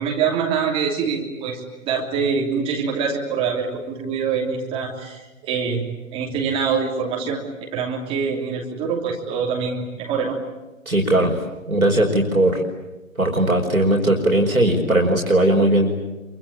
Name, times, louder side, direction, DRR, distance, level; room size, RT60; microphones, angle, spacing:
voice 1, 0.0-5.8 6.1-10.4, right 6 dB, 15° right, -1 dB, 3.2 m, -25 dB
voice 2, 10.9-11.4 11.7-12.6 13.2-15.9, right 1 dB, 80° right, 0 dB, 5.1 m, -18 dB
27.5 x 25.0 x 8.7 m, 1.1 s
figure-of-eight pair, 135°, 41 cm